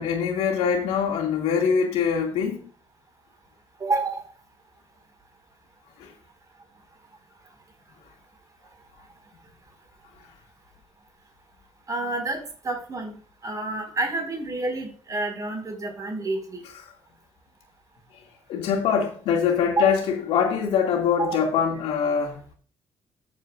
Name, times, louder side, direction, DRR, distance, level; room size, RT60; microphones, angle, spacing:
voice 1, 0.0-2.7 6.0-6.1 18.5-22.5, left 7 dB, 90° left, 2.3 m, -23 dB
voice 2, 3.8-4.2 11.9-13.2 13.4-16.6 19.8-19.9 21.2-21.4, right 2 dB, 35° right, 4.9 m, -28 dB
14.0 x 7.4 x 2.5 m
cardioid pair, 95°, 10 cm